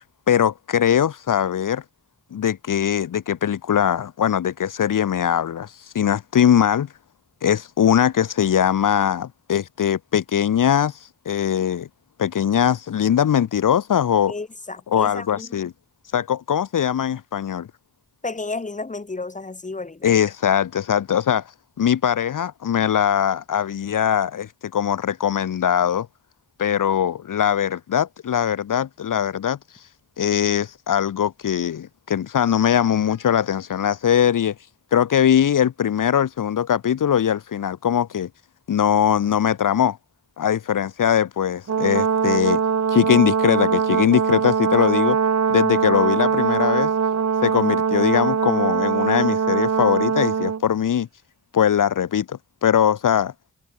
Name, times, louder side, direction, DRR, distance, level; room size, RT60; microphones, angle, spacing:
voice 1, 0.3-1.8 2.3-6.9 7.4-11.9 12.2-14.3 14.9-15.7 16.1-17.7 20.0-21.5 21.8-26.1 26.6-29.8 30.2-34.5 34.9-38.3 38.7-40.0 40.4-42.6 42.9-45.2 45.5-46.9 47.4-51.1 51.5-53.3, left 9 dB, 70° left, 1.0 m, -21 dB
voice 2, 14.3-15.6 18.2-20.1, left 3 dB, 25° left, 2.0 m, -32 dB
Brass instrument, 41.7-50.6, right 7 dB, 55° right, 1.5 m, -21 dB
wide cardioid pair, 115°, 33 cm